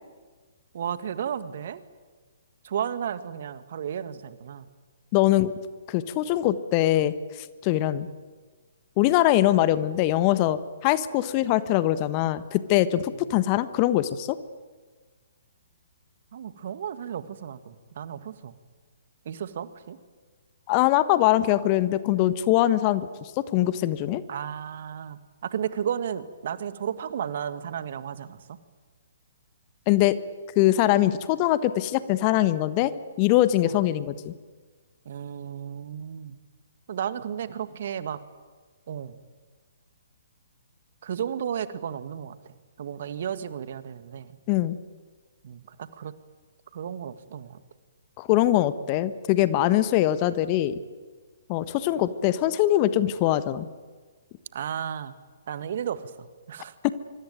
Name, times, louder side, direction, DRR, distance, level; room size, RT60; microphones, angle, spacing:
voice 1, 0.7-1.8 2.6-4.7 5.2-5.3 13.1-13.2 16.3-18.6 19.3-20.0 24.3-28.6 33.6-33.8 35.1-36.4 36.9-38.2 38.9-39.2 41.0-42.4 42.8-44.4 45.4-46.1 46.7-47.6 54.5-55.2 55.5-56.7, right 8 dB, 50° right, 13 dB, 1.8 m, -33 dB
voice 2, 5.1-5.5 5.9-7.1 7.6-8.1 9.0-14.4 20.7-24.2 29.9-30.2 30.5-32.9 33.2-34.3 44.5-44.8 48.2-50.8 51.5-53.7 56.8-56.9, left 14 dB, 30° left, 14 dB, 1.3 m, -22 dB
25.0 x 25.0 x 9.3 m, 1.4 s
figure-of-eight pair, 125°, 0 cm